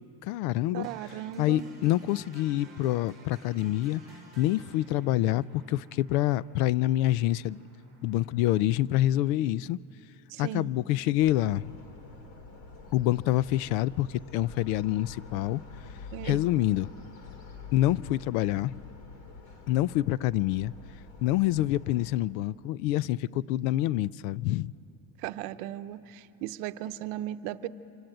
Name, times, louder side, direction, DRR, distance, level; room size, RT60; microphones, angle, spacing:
voice 1, 0.0-0.9 1.4-4.0 4.4-7.6 8.0-9.8 10.4-11.7 12.9-15.6 16.2-16.9 17.7-18.8 19.7-20.7 21.2-24.7, left 15 dB, 90° left, 0.6 m, -26 dB
voice 2, 0.7-1.7 10.3-10.7 16.1-16.4 25.2-27.7, right 13 dB, 65° right, 0.9 m, -36 dB
sound 1, 0.8-8.8, right 2 dB, 20° right, 4.5 m, -54 dB
sound 2, 11.2-22.2, left 4 dB, 50° left, 2.6 m, -47 dB
26.5 x 23.5 x 9.0 m
cardioid pair, 165°, 47 cm